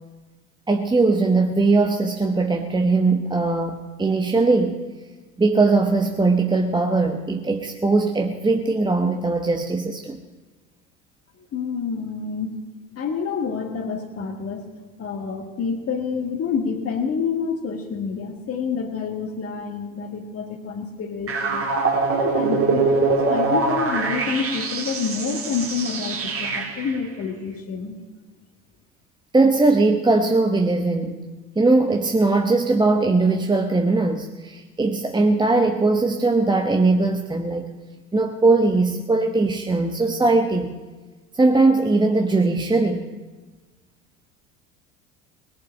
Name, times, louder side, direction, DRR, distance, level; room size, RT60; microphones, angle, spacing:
voice 1, 0.7-4.8 5.4-10.2 29.3-31.1 31.6-37.7 38.1-40.7 41.3-43.1, right 3 dB, 10° right, 4 dB, 1.0 m, -20 dB
voice 2, 11.4-12.6 13.0-14.7 15.0-21.7 22.1-28.0, left 5 dB, 35° left, 1 dB, 1.9 m, -28 dB
sound 1, 21.3-27.0, right 4 dB, 35° right, 2.5 m, -23 dB
19.5 x 7.5 x 8.9 m, 1.2 s
figure-of-eight pair, 65°, 40 cm